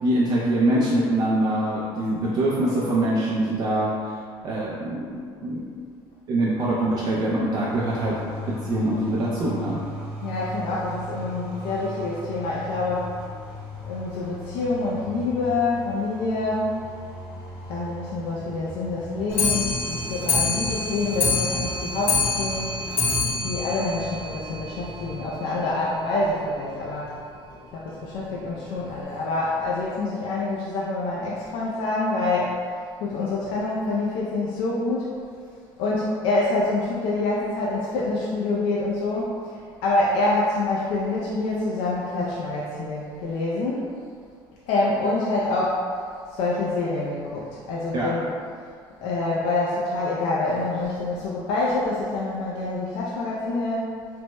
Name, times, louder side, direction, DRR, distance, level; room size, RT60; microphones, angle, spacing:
voice 1, 0.0-4.2 4.4-5.6 6.3-8.2 8.6-9.8 47.9-48.1, right 1 dB, 45° right, -6 dB, 0.4 m, -24 dB
sound 1, 7.7-25.2, left 1 dB, 20° right, 0.8 m, -39 dB
voice 2, 10.2-13.1 13.9-16.8 17.7-22.8 23.4-27.1 27.7-32.7 33.0-35.3 35.8-43.9 44.7-45.8 46.3-48.3 49.0-53.9, left 2 dB, 75° left, -5 dB, 0.4 m, -26 dB
Clock, 19.3-24.8 25.1-25.2 25.5-25.6 25.9-26.0 26.3-26.4 27.1-27.2 27.9-28.0 28.7-28.8, left 4 dB, 25° left, 0.6 m, -26 dB
3.2 x 2.1 x 3.0 m, 2.2 s
cardioid pair, 175°, 9 cm